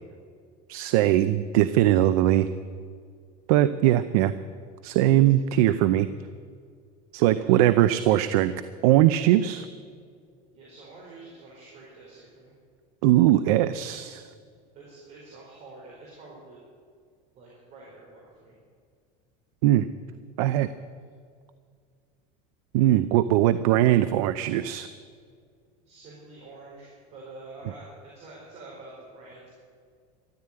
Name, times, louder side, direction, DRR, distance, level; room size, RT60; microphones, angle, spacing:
voice 1, 0.7-2.5 3.5-4.3 4.8-6.1 7.1-8.5 8.8-9.7 13.0-14.3 19.6-19.9 20.4-20.7 22.7-24.9, right 13 dB, 75° right, 12 dB, 0.6 m, -20 dB
voice 2, 7.2-7.6 10.5-12.5 14.7-16.6 17.3-18.5 25.8-29.5, right 2 dB, 35° right, -5 dB, 4.5 m, -47 dB
13.5 x 12.0 x 8.9 m, 2.1 s
cardioid pair, 170°, 19 cm